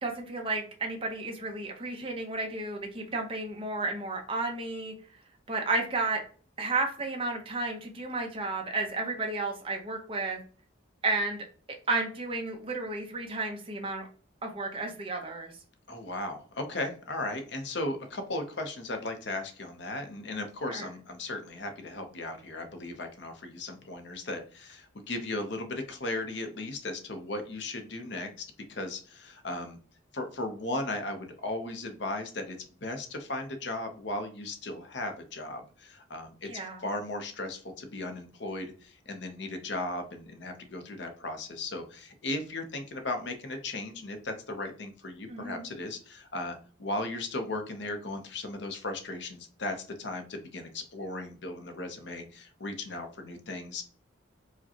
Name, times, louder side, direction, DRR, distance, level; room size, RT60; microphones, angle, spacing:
voice 1, 0.0-4.9 5.5-6.2 6.6-10.4 11.0-11.4 11.9-14.1 14.4-15.5 20.6-20.9 36.4-36.8 45.3-45.7, right 3 dB, 30° right, 2 dB, 0.8 m, -32 dB
voice 2, 15.9-29.8 30.1-53.8, left 2 dB, 60° left, 6 dB, 0.7 m, -36 dB
4.8 x 2.2 x 2.8 m, 0.40 s
head